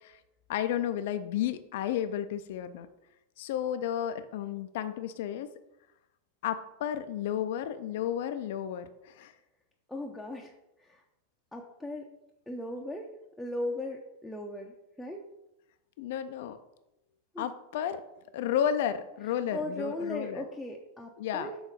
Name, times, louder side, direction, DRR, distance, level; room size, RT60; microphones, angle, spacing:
voice 1, 0.5-2.9 3.4-5.5 6.4-9.3 16.0-16.6 17.4-18.0 18.3-20.4 21.2-21.5, left 10 dB, 55° left, 10 dB, 0.4 m, -32 dB
voice 2, 9.9-11.0 11.5-12.1 12.5-13.1 13.4-15.3 17.3-17.5 19.2-21.6, left 1 dB, 5° left, -1 dB, 0.6 m, -38 dB
6.3 x 3.9 x 5.1 m, 0.89 s
figure-of-eight pair, 90°, 0 cm